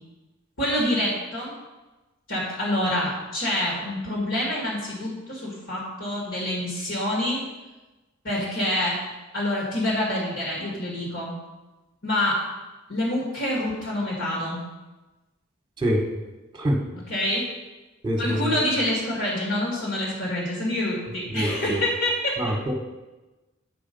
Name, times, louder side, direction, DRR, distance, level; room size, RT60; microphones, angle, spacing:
voice 1, 0.6-1.5 2.3-7.4 8.2-9.0 9.3-11.3 12.0-12.4 12.9-14.6 17.1-17.5 18.2-22.5, left 1 dB, 65° left, -3 dB, 2.0 m, -26 dB
voice 2, 18.0-18.6 21.3-21.8 22.4-22.7, equal, 20° right, 3 dB, 1.1 m, -25 dB
9.5 x 4.9 x 5.2 m, 1.1 s
head